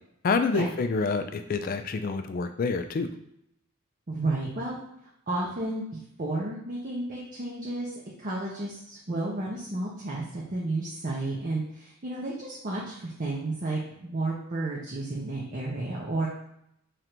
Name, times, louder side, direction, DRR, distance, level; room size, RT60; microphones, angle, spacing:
voice 1, 0.2-3.1, left 4 dB, 40° left, 8 dB, 0.3 m, -27 dB
voice 2, 4.1-4.8 5.3-7.9 8.2-16.3, right 2 dB, 40° right, -4 dB, 0.7 m, -32 dB
3.2 x 2.6 x 4.4 m, 0.78 s
head